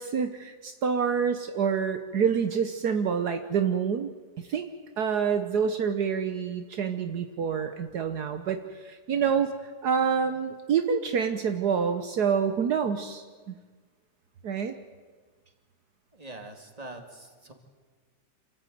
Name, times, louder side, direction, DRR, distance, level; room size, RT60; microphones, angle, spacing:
voice 1, 0.0-4.1 4.4-4.7 5.0-9.5 9.8-13.5 14.4-14.7, right 7 dB, 70° right, 7 dB, 1.5 m, -27 dB
voice 2, 16.1-17.5, right 2 dB, 20° right, 4 dB, 2.5 m, -44 dB
27.0 x 14.5 x 9.3 m, 1.5 s
omnidirectional pair, 1.8 m